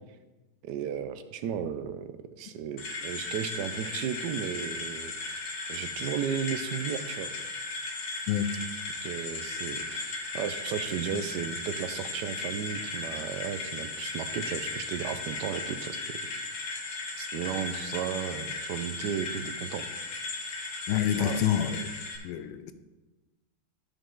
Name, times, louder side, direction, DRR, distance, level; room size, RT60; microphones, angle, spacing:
voice 1, 0.6-2.0 2.4-5.4 5.7-7.3 9.0-16.2 17.2-19.9 21.2-21.4, right 8 dB, 75° right, 10 dB, 0.9 m, -34 dB
sound 1, 2.8-22.2, left 3 dB, 60° left, 1.7 m, -36 dB
voice 2, 20.9-21.9 22.2-22.7, left 10 dB, 80° left, 11 dB, 1.4 m, -27 dB
12.5 x 5.2 x 3.7 m, 1.2 s
omnidirectional pair, 2.3 m